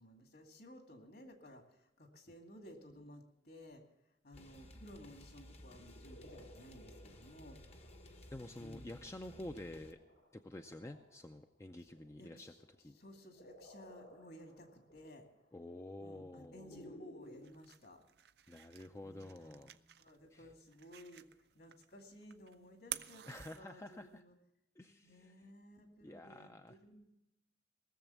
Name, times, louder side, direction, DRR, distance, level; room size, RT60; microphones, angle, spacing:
voice 1, 0.0-3.8 4.2-7.6 8.6-8.9 11.8-11.9 12.2-12.6 12.9-15.3 16.0-18.0 19.0-21.3 21.5-23.3 23.5-24.4 25.0-27.1, equal, 60° left, 4 dB, 2.3 m, -56 dB
sound 1, 4.3-9.9, left 1 dB, 35° left, 0.9 m, -57 dB
sound 2, 5.5-17.5, left 1 dB, 85° left, 3.5 m, -59 dB
voice 2, 8.3-10.0 10.3-12.5 12.8-13.0 15.5-17.0 18.5-19.8 20.3-20.5 23.3-24.2 24.8-25.3 26.0-26.8, left 1 dB, 15° left, 6 dB, 0.5 m, -49 dB
sound 3, 17.2-24.2, right 13 dB, 60° right, 0.5 m, -51 dB
18.5 x 7.2 x 7.0 m, 0.88 s
head